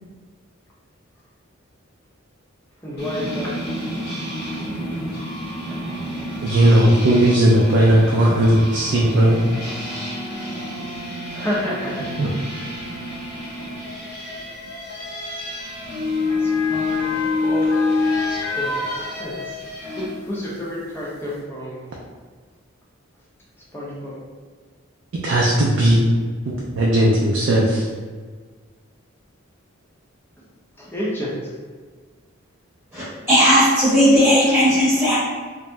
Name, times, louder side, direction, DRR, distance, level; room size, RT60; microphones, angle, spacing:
voice 1, 2.8-3.5 4.3-4.6 5.6-5.8 10.8-12.1 12.7-12.8 13.3-13.8 14.2-14.4 16.3-17.7 18.1-19.6 20.0-22.0 23.7-24.2 30.7-31.5, left 1 dB, 10° left, -6 dB, 0.6 m, -31 dB
sound 1, 3.0-20.1, left 2 dB, 50° left, 0.9 m, -28 dB
voice 2, 6.4-9.4 12.2-12.3 25.2-26.0 26.8-27.9, right 1 dB, 60° right, -3 dB, 0.4 m, -16 dB
Motor vehicle (road) / Siren, 10.9-11.1 12.1-19.7 20.2-20.3, left 3 dB, 65° left, 0.5 m, -32 dB
voice 3, 32.9-35.2, equal, 10° right, -11 dB, 0.9 m, -16 dB
2.6 x 2.0 x 3.3 m, 1.5 s
head